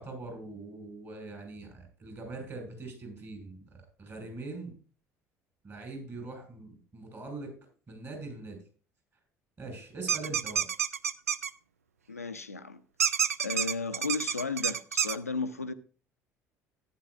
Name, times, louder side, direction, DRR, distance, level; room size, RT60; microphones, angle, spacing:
voice 1, 0.0-3.6 4.0-4.7 5.6-7.5 7.9-8.6 9.6-10.6, right 3 dB, 35° right, 5.4 m, -42 dB
sound 1, 10.1-11.5 13.0-15.2, right 7 dB, 85° right, 0.4 m, -28 dB
voice 2, 12.1-12.8 13.4-15.7, left 4 dB, 90° left, 0.5 m, -34 dB
14.0 x 10.0 x 2.4 m
figure-of-eight pair, 60°, 8 cm